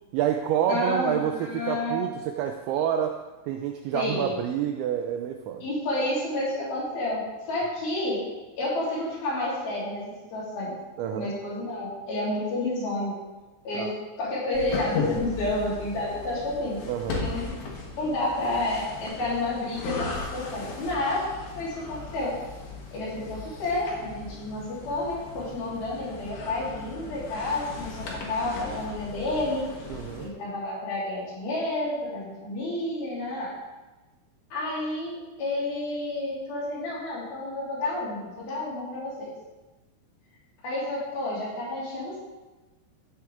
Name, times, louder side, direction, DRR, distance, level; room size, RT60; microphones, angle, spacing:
voice 1, 0.1-3.2 3.4-5.6 11.0-11.3 13.7-13.9 16.9-17.2 29.9-30.3, right 10 dB, 85° right, 5 dB, 2.6 m, -28 dB
voice 2, 0.7-2.0 3.9-4.4 5.6-7.2 7.5-8.2 8.6-10.0 10.3-10.7 11.1-13.1 13.6-13.9 14.2-16.8 17.1-17.6 17.9-21.3 21.5-22.3 22.9-29.6 30.2-33.5 34.5-39.3 40.6-42.2, left 2 dB, 50° left, -8 dB, 4.8 m, -30 dB
sound 1, 14.5-30.3, left 4 dB, 85° left, 1.5 m, -37 dB
15.0 x 7.7 x 3.5 m, 1.1 s
omnidirectional pair, 5.8 m